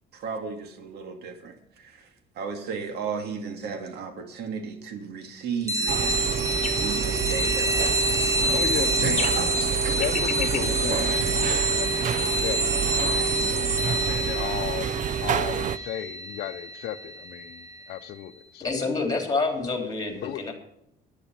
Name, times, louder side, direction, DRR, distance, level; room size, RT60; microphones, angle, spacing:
voice 1, 0.1-2.1 2.3-8.4 9.0-9.9, right 5 dB, 75° right, 6 dB, 2.2 m, -35 dB
sound 1, 5.7-17.8, right 1 dB, 20° right, 1.7 m, -27 dB
sound 2, 5.9-15.8, right 9 dB, 45° right, 0.5 m, -28 dB
sound 3, 6.5-11.5, left 8 dB, 45° left, 1.5 m, -37 dB
voice 2, 8.5-9.2 10.0-12.6 13.0-18.7 20.2-20.4, left 12 dB, 70° left, 12 dB, 0.8 m, -35 dB
voice 3, 18.6-20.5, left 3 dB, 20° left, 4 dB, 3.7 m, -27 dB
10.0 x 10.0 x 5.9 m, 0.78 s
cardioid pair, 110°, 17 cm